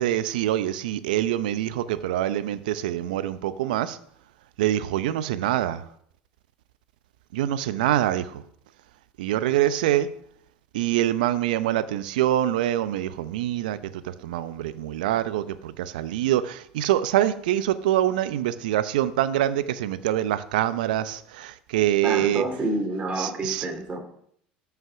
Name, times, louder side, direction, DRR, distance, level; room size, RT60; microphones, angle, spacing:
voice 1, 0.0-4.0 4.6-5.8 7.3-8.4 9.2-10.1 10.7-22.4 23.2-23.7, right 12 dB, 75° right, 0.7 m, -25 dB
voice 2, 22.0-24.0, right 2 dB, 25° right, 3.5 m, -28 dB
13.0 x 5.9 x 5.9 m
hypercardioid pair, 70°, 5 cm